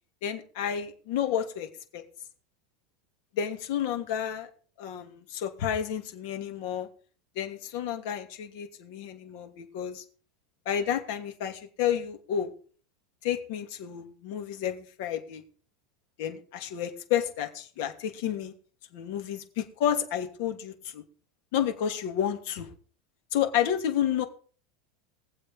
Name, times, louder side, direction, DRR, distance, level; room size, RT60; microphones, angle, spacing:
voice 1, 0.2-1.7 1.9-2.0 3.3-4.5 4.8-6.9 7.4-10.0 10.7-12.5 13.2-15.4 16.2-18.5 18.9-21.0 21.5-22.7 23.3-24.2, left 9 dB, 55° left, 5 dB, 2.6 m, -30 dB
21.0 x 7.6 x 5.3 m, 0.42 s
supercardioid pair, 175°, 0 cm